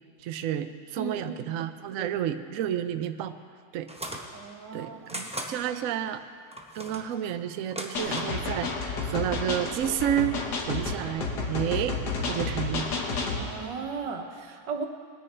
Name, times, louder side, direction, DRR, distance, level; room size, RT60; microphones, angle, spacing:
voice 1, 0.2-3.3 3.7-3.9 4.7-6.2 6.7-10.4 10.7-12.9, right 10 dB, 65° right, 9 dB, 0.8 m, -30 dB
voice 2, 1.0-1.5 2.0-2.1 4.3-5.0 5.7-5.8 13.3-14.9, right 5 dB, 85° right, 3 dB, 1.7 m, -36 dB
sound 1, 3.9-4.3 5.1-5.5 6.5-7.1 7.6-8.4, right 1 dB, 5° right, 0.6 m, -37 dB
sound 2, 7.9-13.4, left 4 dB, 70° left, 1.8 m, -31 dB
20.0 x 9.7 x 4.3 m, 2.1 s
omnidirectional pair, 1.9 m